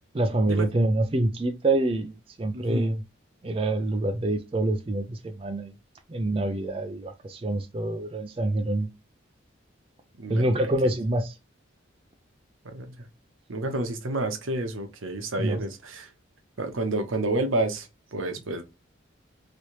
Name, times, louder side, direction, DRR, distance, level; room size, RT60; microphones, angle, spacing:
voice 1, 0.1-3.0 3.4-5.7 6.1-8.9 10.3-11.3 15.4-15.6, right 1 dB, 30° right, 0.4 m, -26 dB
voice 2, 2.5-2.9 10.2-10.7 12.6-12.9 13.5-16.1 16.6-18.6, right 2 dB, 90° right, 0.8 m, -30 dB
3.1 x 2.7 x 2.9 m
head